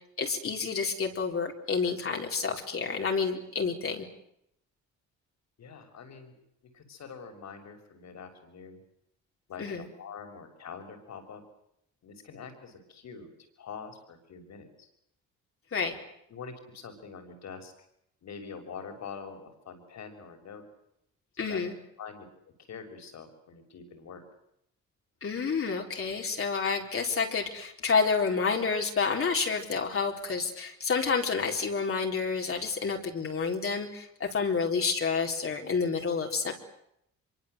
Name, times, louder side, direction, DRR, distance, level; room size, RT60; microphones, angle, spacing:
voice 1, 0.2-4.1 9.6-9.8 15.7-15.9 21.4-21.7 25.2-36.5, left 5 dB, 45° left, 1 dB, 4.4 m, -29 dB
voice 2, 5.6-6.3 6.7-8.8 9.5-11.4 12.0-13.3 13.6-14.9 16.3-17.7 18.2-20.6 21.4-21.7 22.0-22.3 22.6-24.2, left 6 dB, 65° left, 5 dB, 6.6 m, -45 dB
25.0 x 24.0 x 8.2 m, 0.77 s
cardioid pair, 90°, 30 cm